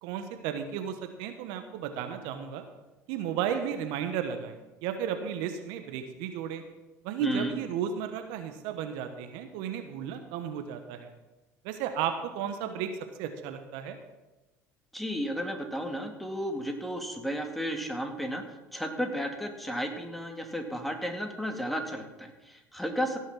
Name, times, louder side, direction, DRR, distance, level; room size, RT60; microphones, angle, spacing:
voice 1, 0.0-2.6 3.1-6.6 7.0-11.1 11.6-12.9 13.2-14.0, right 8 dB, 70° right, 7 dB, 1.2 m, -34 dB
voice 2, 7.2-7.5 14.9-18.4 18.7-23.2, equal, ahead, 3 dB, 2.4 m, -33 dB
17.0 x 6.3 x 6.1 m, 1.1 s
hypercardioid pair, 65°, 8 cm